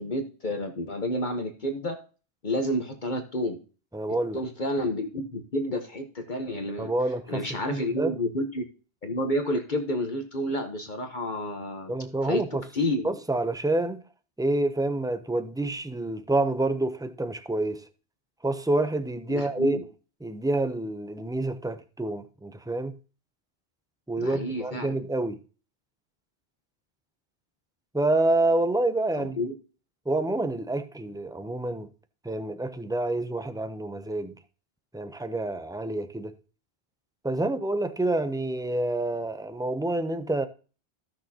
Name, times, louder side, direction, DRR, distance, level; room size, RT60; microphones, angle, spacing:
voice 1, 0.0-2.0 2.4-3.6 4.3-6.9 7.3-8.6 9.0-11.9 12.2-12.4 12.7-13.1 19.3-19.8 24.2-25.0 29.2-29.5, left 1 dB, 45° left, 1.1 m, -30 dB
voice 2, 3.9-4.4 6.8-7.4 7.7-8.2 11.9-12.6 13.0-14.0 14.4-17.8 18.4-19.8 20.2-23.0 24.1-25.4 27.9-29.4 30.1-31.9 32.2-34.3 34.9-36.3 37.2-40.5, right 2 dB, 5° right, 0.3 m, -28 dB
15.5 x 6.2 x 2.8 m
omnidirectional pair, 1.1 m